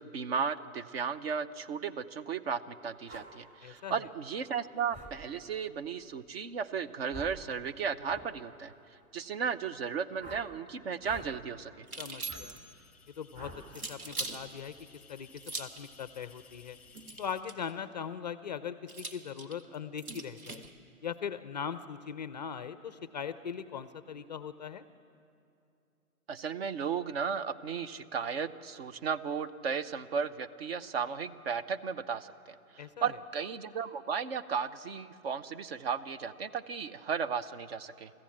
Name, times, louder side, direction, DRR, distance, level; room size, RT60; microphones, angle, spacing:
voice 1, 0.0-8.7 9.1-11.9 26.3-38.1, right 6 dB, 45° right, 14 dB, 0.8 m, -35 dB
sound 1, 3.1-3.3 4.9-5.1 7.1-7.4 8.0-8.3 10.2-10.5 11.0-11.3 12.3-12.4 13.3-13.6, right 1 dB, 15° right, 2.1 m, -46 dB
voice 2, 3.6-3.9 12.0-12.6 13.2-13.5 13.9-14.7 15.1-16.8 17.2-20.6 21.0-24.8 32.8-33.1, left 7 dB, 30° left, 13 dB, 0.4 m, -40 dB
sound 2, 11.8-12.7 13.7-14.4 15.4-15.9 16.9-17.7 18.9-20.7, right 3 dB, 75° right, 1.9 m, -41 dB
sound 3, 12.4-17.4, left 6 dB, 5° left, 0.9 m, -58 dB
24.5 x 14.5 x 7.3 m, 2.7 s
figure-of-eight pair, 125°, 44 cm